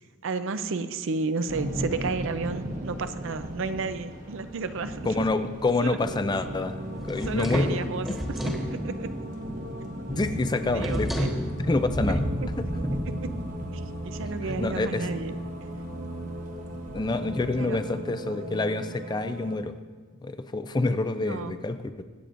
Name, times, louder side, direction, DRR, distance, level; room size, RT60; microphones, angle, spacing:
voice 1, 0.2-5.2 5.8-6.0 7.2-8.1 8.4-9.1 10.6-11.3 12.1-12.5 13.7-15.3 17.5-17.8 21.2-21.6, right 4 dB, 65° right, 11 dB, 0.5 m, -32 dB
Thunder / Rain, 1.5-17.6, equal, 35° right, 1.1 m, -36 dB
voice 2, 5.1-6.8 7.1-7.8 8.1-8.2 10.1-11.3 11.6-12.3 12.6-12.7 14.5-15.1 16.9-19.7 20.2-22.0, left 2 dB, 20° left, 10 dB, 0.4 m, -27 dB
sound 1, 6.0-19.6, right 1 dB, 80° right, 1.9 m, -38 dB
sound 2, 7.0-8.7 10.8-11.4, equal, ahead, 1.4 m, -31 dB
23.5 x 8.3 x 2.5 m, 1.4 s
head